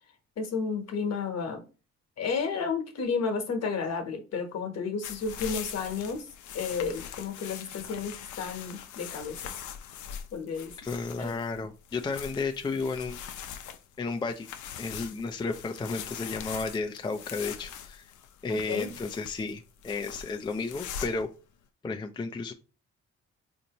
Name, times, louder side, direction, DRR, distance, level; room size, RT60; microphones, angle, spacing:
voice 1, 0.4-1.6 2.2-6.3 6.5-9.5 10.3-10.8 11.2-11.4 18.5-18.9, left 5 dB, 55° left, 5 dB, 1.1 m, -32 dB
sound 1, 5.0-21.3, left 8 dB, 75° left, 0.6 m, -42 dB
voice 2, 10.8-13.2 14.0-14.5 14.8-18.0 18.4-21.3 21.8-22.5, left 4 dB, 15° left, 5 dB, 0.4 m, -33 dB
4.2 x 2.7 x 2.9 m, 0.34 s
cardioid pair, 90°, 30 cm